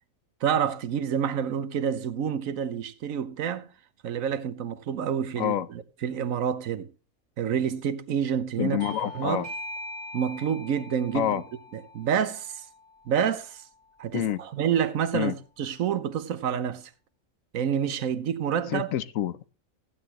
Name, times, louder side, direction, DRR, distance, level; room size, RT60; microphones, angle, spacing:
voice 1, 0.4-3.7 4.0-5.5 6.0-6.9 7.4-8.8 9.1-9.4 10.1-11.3 11.7-12.6 13.1-13.6 14.0-16.9 17.5-18.9, right 8 dB, 80° right, 1.2 m, -28 dB
voice 2, 5.4-5.7 8.6-9.5 11.1-11.4 14.1-14.4 15.1-15.3 18.7-19.5, left 11 dB, 80° left, 1.1 m, -28 dB
Bell / Doorbell, 8.8-13.9, left 1 dB, 30° right, 2.3 m, -42 dB
15.0 x 10.0 x 2.9 m
omnidirectional pair, 1.4 m